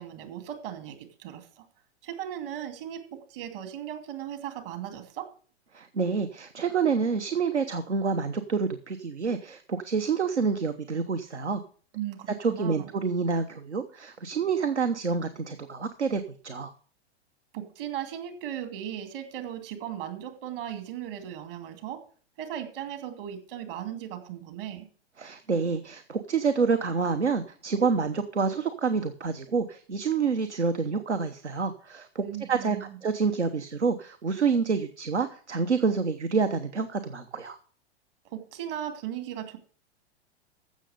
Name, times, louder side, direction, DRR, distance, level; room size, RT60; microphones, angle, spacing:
voice 1, 0.0-1.6 2.0-5.3 11.9-12.9 17.5-22.0 22.4-24.9 32.2-33.0 38.3-39.6, right 10 dB, 55° right, 8 dB, 2.6 m, -37 dB
voice 2, 5.7-11.6 12.4-16.7 25.2-37.6, right 5 dB, 85° right, 9 dB, 1.0 m, -28 dB
15.0 x 6.6 x 5.1 m, 0.43 s
figure-of-eight pair, 105°, 34 cm